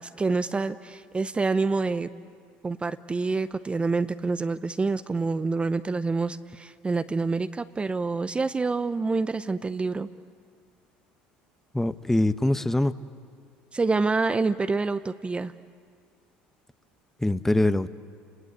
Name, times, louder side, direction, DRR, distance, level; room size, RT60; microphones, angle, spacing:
voice 1, 0.0-2.1 2.6-10.1 13.7-15.5, right 3 dB, 20° right, 11 dB, 0.7 m, -27 dB
voice 2, 11.7-12.9 17.2-17.9, left 1 dB, 5° left, 13 dB, 0.8 m, -23 dB
30.0 x 21.0 x 8.1 m, 2.1 s
hypercardioid pair, 80°, 6 cm